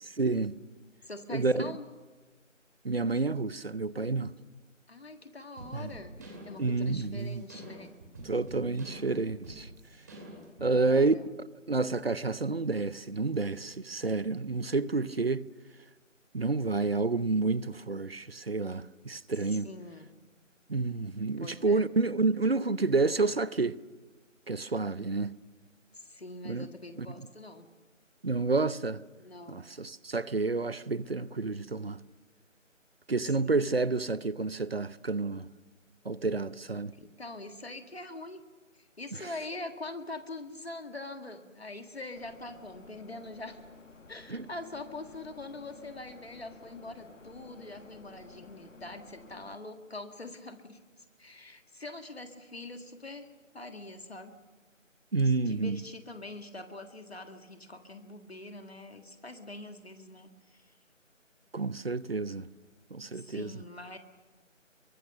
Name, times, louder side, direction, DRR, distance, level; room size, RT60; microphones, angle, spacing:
voice 1, 0.0-0.6 1.3-1.7 2.8-4.3 5.7-5.9 6.6-7.4 8.2-9.7 10.6-11.1 11.7-15.5 16.3-19.7 20.7-23.8 24.5-25.4 26.4-26.7 27.0-27.3 28.2-29.0 29.5-32.0 33.1-35.5 36.0-36.9 39.2-39.3 44.3-44.4 55.1-55.8 61.5-62.5 62.9-63.5, right 3 dB, 50° right, 0.8 m, -29 dB
voice 2, 1.0-1.8 4.9-7.9 10.6-11.2 19.4-20.1 21.4-21.9 25.9-27.7 29.2-29.7 33.2-33.5 36.9-38.4 38.7-43.6 44.1-53.3 53.5-54.3 55.4-60.7 63.0-64.0, left 2 dB, 50° left, 1.9 m, -44 dB
sound 1, 5.6-10.7, right 1 dB, 15° right, 2.5 m, -47 dB
sound 2, 42.1-49.6, left 4 dB, 70° left, 1.7 m, -53 dB
27.0 x 23.0 x 6.6 m
figure-of-eight pair, 165°, 39 cm